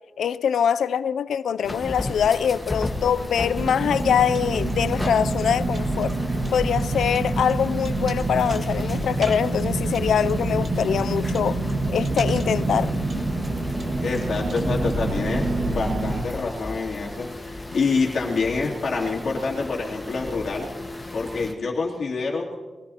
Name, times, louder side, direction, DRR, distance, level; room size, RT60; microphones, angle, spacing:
voice 1, 0.2-6.2 6.5-11.6 11.9-12.9, left 8 dB, 85° left, 0.3 m, -23 dB
sound 1, 1.6-21.5, left 2 dB, 10° left, 1.4 m, -36 dB
Car, 3.6-16.2, right 2 dB, 40° right, 1.8 m, -26 dB
voice 2, 14.0-20.7 21.1-22.6, left 4 dB, 55° left, 3.0 m, -27 dB
22.5 x 17.0 x 2.9 m
wide cardioid pair, 145°, 0 cm